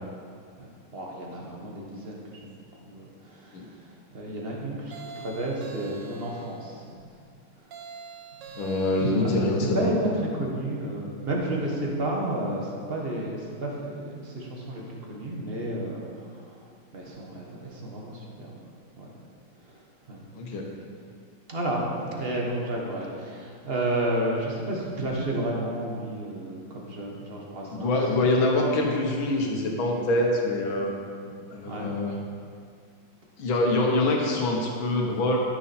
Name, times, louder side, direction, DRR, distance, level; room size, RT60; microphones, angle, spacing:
voice 1, 0.6-2.6 2.8-6.9 8.5-8.6 9.0-18.6 19.0-19.2 19.6-20.5 21.5-28.0 31.2-31.3 31.6-32.0 33.9-34.1, right 1 dB, 35° right, -2 dB, 1.3 m, -32 dB
sound 1, 4.9-6.7 7.7-9.5, right 5 dB, 65° right, 1.5 m, -44 dB
voice 2, 8.6-9.9 20.3-20.6 27.7-30.9 31.5-32.1 33.4-35.4, left 2 dB, 80° left, 0 dB, 2.0 m, -25 dB
13.0 x 6.5 x 4.3 m, 2.2 s
omnidirectional pair, 2.2 m